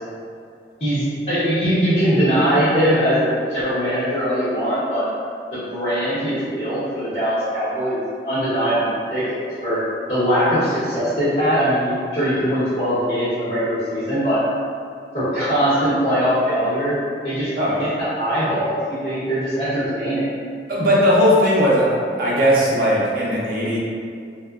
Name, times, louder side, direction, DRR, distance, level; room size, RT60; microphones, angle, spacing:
voice 1, 0.8-5.1 5.5-9.8 10.1-14.4 15.1-17.0 17.2-17.5 17.8-20.3, equal, 40° left, -16 dB, 0.9 m, -21 dB
voice 2, 17.6-17.9 20.7-21.9 22.2-23.8, equal, 50° right, -7 dB, 0.5 m, -18 dB
2.9 x 2.1 x 2.3 m, 2.3 s
head